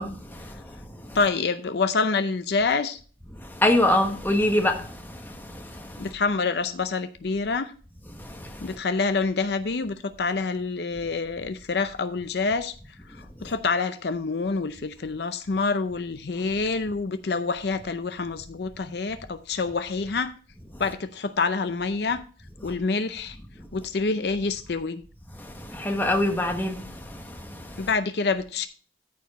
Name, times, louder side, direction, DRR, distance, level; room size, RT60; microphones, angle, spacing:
voice 1, 0.0-1.2 3.3-6.1 8.1-8.8 13.4-13.5 22.6-22.7 23.6-23.7 25.3-27.9, left 1 dB, 10° left, 1.2 m, -27 dB
voice 2, 1.1-3.0 6.0-7.7 8.6-12.7 13.4-20.3 20.8-22.2 22.6-23.4 23.7-25.0 27.8-28.7, left 4 dB, 65° left, 0.6 m, -27 dB
13.5 x 4.6 x 4.1 m
head